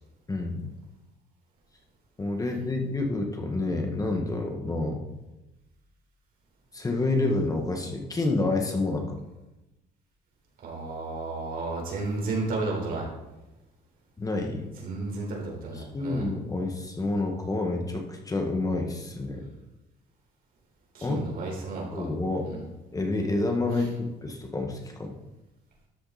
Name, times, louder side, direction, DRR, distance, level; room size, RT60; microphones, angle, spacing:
voice 1, 0.3-0.6 2.2-5.0 6.7-9.2 14.2-14.7 15.7-19.5 21.0-21.2 21.9-22.5 22.9-25.1, left 2 dB, 20° left, 2 dB, 1.7 m, -28 dB
voice 2, 10.6-13.1 14.8-16.3 20.9-22.0 22.4-22.6, right 3 dB, 60° right, -1 dB, 4.6 m, -32 dB
13.0 x 7.6 x 4.3 m, 1.0 s
cardioid pair, 110°, 17 cm